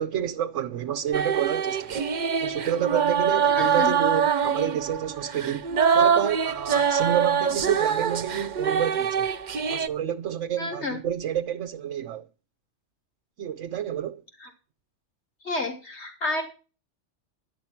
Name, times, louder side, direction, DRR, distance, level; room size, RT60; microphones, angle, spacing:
voice 1, 0.0-2.1 2.4-5.7 5.9-9.3 9.7-12.3 13.4-14.2, right 10 dB, 80° right, 1.2 m, -29 dB
sound 1, 1.1-9.9, right 7 dB, 45° right, 0.7 m, -24 dB
voice 2, 3.5-4.0 10.6-11.0 14.4-14.5 15.4-16.4, left 2 dB, 65° left, 3.3 m, -30 dB
11.5 x 10.5 x 5.8 m
omnidirectional pair, 1.2 m